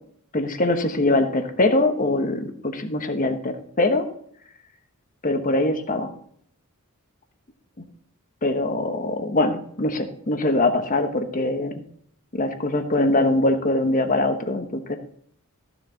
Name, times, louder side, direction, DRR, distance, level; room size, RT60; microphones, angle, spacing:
voice 1, 0.3-4.1 5.2-6.1 8.4-11.7 12.3-15.0, left 2 dB, 35° left, 7 dB, 1.1 m, -22 dB
14.5 x 7.1 x 3.9 m, 0.65 s
head